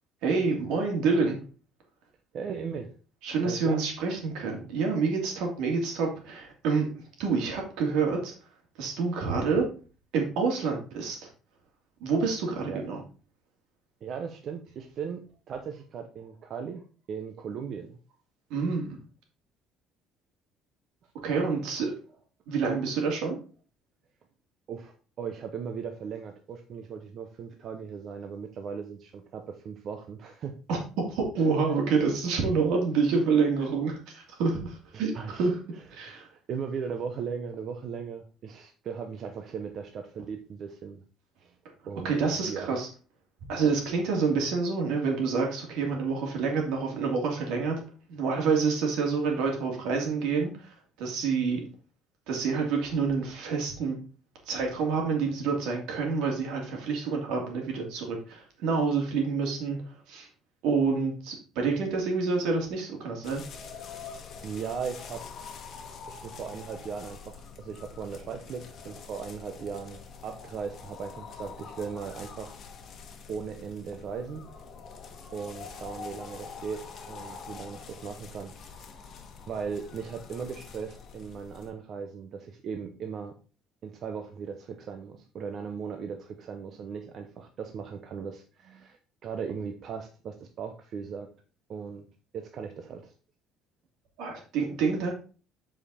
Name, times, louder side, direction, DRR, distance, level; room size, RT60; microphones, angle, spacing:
voice 1, 0.2-1.4 3.2-6.9 7.2-8.3 8.8-9.7 10.1-11.3 12.0-13.0 18.5-19.0 21.2-21.9 22.5-23.4 30.7-30.8 31.1-35.1 35.4-35.6 35.9-36.3 42.0-42.9 43.5-47.8 48.1-50.7 51.0-51.6 52.3-54.0 54.5-59.8 60.1-60.3 60.6-63.4 94.2-95.2, right 4 dB, 80° right, 1 dB, 2.8 m, -27 dB
voice 2, 2.3-2.9 3.4-3.8 12.6-12.8 14.0-15.2 15.5-18.0 24.7-30.5 31.7-31.8 33.6-33.7 34.9-35.5 36.0-36.1 36.5-41.0 41.4-41.5 41.9-42.8 64.4-65.2 65.5-65.6 66.1-72.6 73.3-74.4 75.3-76.8 77.1-78.8 79.5-83.3 83.8-91.3 91.7-92.0 92.3-93.1, right 6 dB, 45° right, 5 dB, 0.8 m, -38 dB
sound 1, 63.2-81.7, left 5 dB, 40° left, 1.3 m, -45 dB
7.6 x 5.1 x 4.2 m, 0.37 s
cardioid pair, 150°, 0 cm